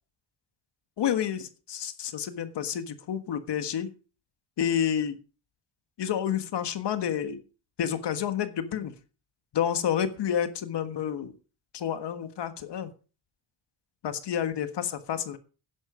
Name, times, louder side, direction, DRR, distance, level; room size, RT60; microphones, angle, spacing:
voice 1, 1.0-3.9 4.6-5.1 6.0-7.4 7.8-8.9 9.5-11.3 11.7-12.9 14.0-15.4, left 9 dB, 60° left, 10 dB, 1.6 m, -29 dB
10.5 x 9.9 x 5.0 m, 0.36 s
cardioid pair, 90°, 47 cm